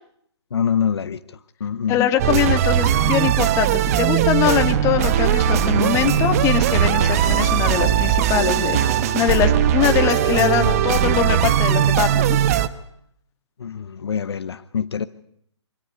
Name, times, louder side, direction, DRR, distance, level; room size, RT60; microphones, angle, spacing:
voice 1, 0.5-1.2 1.6-2.0 13.6-15.1, left 7 dB, 60° left, 13 dB, 0.9 m, -24 dB
voice 2, 1.9-12.4, left 11 dB, 20° left, 7 dB, 1.8 m, -22 dB
sound 1, 2.2-12.7, right 11 dB, 35° right, 1.1 m, -19 dB
sound 2, 5.4-12.2, equal, 80° right, 5.1 m, -30 dB
25.0 x 16.5 x 9.9 m, 0.72 s
figure-of-eight pair, 135°, 15 cm